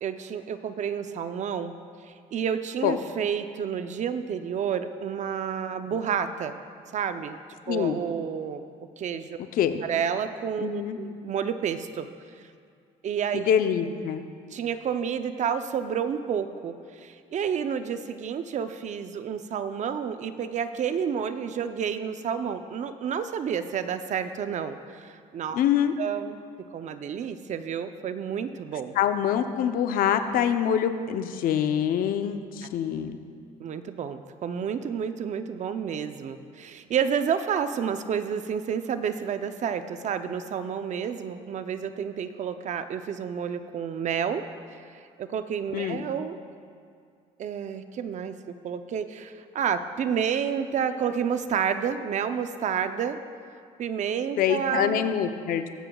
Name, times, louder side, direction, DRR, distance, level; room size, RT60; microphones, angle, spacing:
voice 1, 0.0-1.8 2.0-6.6 6.9-7.4 7.7-8.6 9.0-9.4 9.8-12.1 12.4-12.5 13.0-13.5 14.5-25.6 26.0-28.9 33.6-44.4 44.7-46.4 47.4-48.4 48.6-53.2 53.8-55.1, right 7 dB, 50° right, 9 dB, 0.6 m, -30 dB
voice 2, 7.7-8.0 9.5-9.8 10.6-11.0 13.3-14.2 25.5-25.9 29.0-33.2 45.7-46.1 54.4-55.7, left 9 dB, 65° left, 9 dB, 0.7 m, -25 dB
22.5 x 7.7 x 2.3 m, 2.3 s
supercardioid pair, 90°, 16 cm